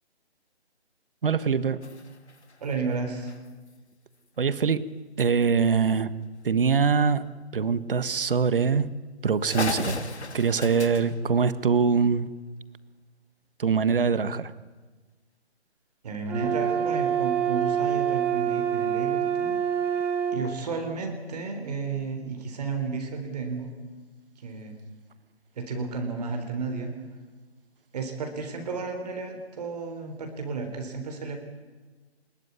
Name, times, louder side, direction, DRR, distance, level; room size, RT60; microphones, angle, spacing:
voice 1, 1.2-1.8 4.4-4.8 5.2-6.1 6.4-7.2 7.5-8.9 9.2-10.0 10.3-12.3 13.6-14.5, right 5 dB, 55° right, 15 dB, 1.6 m, -23 dB
sound 1, 1.8-3.8 5.2-5.3 5.7-5.8 6.2-6.4 7.3-7.4 8.2-8.3 8.8-8.9 9.2-9.3 9.5-12.2, left 3 dB, 80° left, 3.1 m, -37 dB
voice 2, 2.6-3.3 16.0-20.0 20.3-23.7 24.4-24.8 25.5-26.9 27.9-31.4, right 4 dB, 35° right, 4 dB, 3.9 m, -33 dB
sound 2, 16.3-20.4, right 8 dB, 5° right, 1.2 m, -26 dB
23.5 x 21.5 x 9.7 m, 1.3 s
figure-of-eight pair, 160°, 33 cm